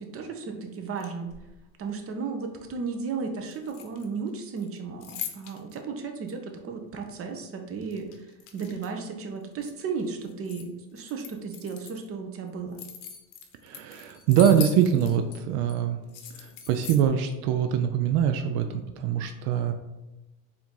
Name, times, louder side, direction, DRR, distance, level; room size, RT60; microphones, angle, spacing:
voice 1, 0.0-1.3 1.8-8.3 8.5-12.8, right 5 dB, 35° right, 4 dB, 0.7 m, -34 dB
sound 1, 0.9-1.6 3.5-4.3 4.6-5.8 6.3-6.4 7.8-9.0 9.4-10.7 11.0-12.1 12.5-15.4 15.7-15.8 16.1-17.1, left 7 dB, 80° left, 0.8 m, -41 dB
voice 2, 13.6-16.0 16.3-19.7, right 8 dB, 75° right, 7 dB, 0.5 m, -24 dB
4.5 x 2.7 x 3.7 m, 1.0 s
supercardioid pair, 100°, 42 cm